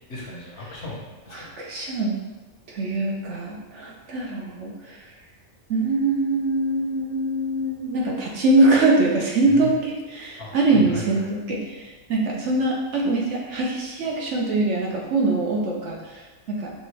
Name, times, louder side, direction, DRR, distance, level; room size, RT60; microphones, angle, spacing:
voice 1, 0.1-1.5 9.5-9.7 10.4-11.3, left 2 dB, 55° left, -3 dB, 0.9 m, -36 dB
voice 2, 1.3-2.2 2.7-5.0 5.7-16.7, right 2 dB, 65° right, -2 dB, 0.9 m, -23 dB
5.2 x 2.5 x 3.2 m, 1.2 s
omnidirectional pair, 1.4 m